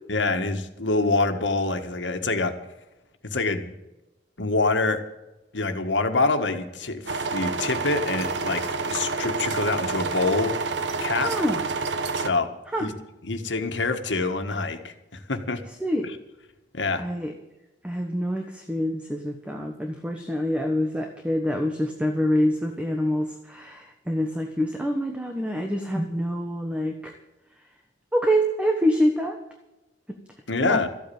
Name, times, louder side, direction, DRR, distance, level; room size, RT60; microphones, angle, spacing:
voice 1, 0.1-2.5 3.2-3.7 4.4-5.0 5.5-10.5 11.0-11.3 12.1-12.5 12.8-12.9 13.3-15.6 16.0-16.1 16.7-17.0 30.5-30.9, left 3 dB, 90° left, 7 dB, 1.7 m, -26 dB
sound 1, 7.1-12.3, right 4 dB, 80° right, 1.1 m, -28 dB
voice 2, 11.2-11.6 12.7-12.9 15.8-16.1 17.0-17.3 17.8-27.1 28.1-29.4 30.6-30.8, equal, 5° right, 3 dB, 1.2 m, -26 dB
14.5 x 8.7 x 8.7 m, 0.98 s
head